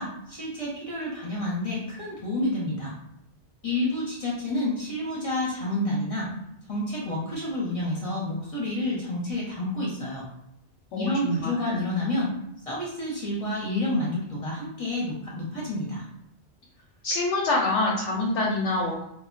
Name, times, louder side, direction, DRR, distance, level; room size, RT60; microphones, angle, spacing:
voice 1, 0.0-2.9 3.6-6.3 6.7-10.3 11.0-12.3 12.7-16.0, left 1 dB, 35° left, -6 dB, 0.7 m, -29 dB
voice 2, 10.9-11.8 17.0-19.0, left 2 dB, 90° left, -2 dB, 0.9 m, -26 dB
2.2 x 2.0 x 3.8 m, 0.77 s
omnidirectional pair, 1.2 m